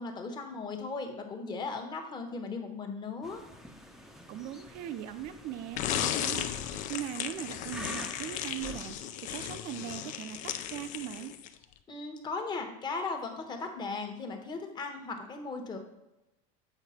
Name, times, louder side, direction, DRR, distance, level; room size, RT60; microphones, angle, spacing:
voice 1, 0.0-3.4 11.9-15.8, left 4 dB, 25° left, 4 dB, 1.2 m, -37 dB
sound 1, 3.2-8.9, equal, ahead, 0.7 m, -47 dB
voice 2, 4.3-9.0 9.3-11.3, right 11 dB, 50° right, 10 dB, 0.6 m, -40 dB
sound 2, 5.8-11.6, left 10 dB, 45° left, 0.5 m, -35 dB
8.1 x 4.8 x 4.3 m, 0.94 s
supercardioid pair, 130°, 18 cm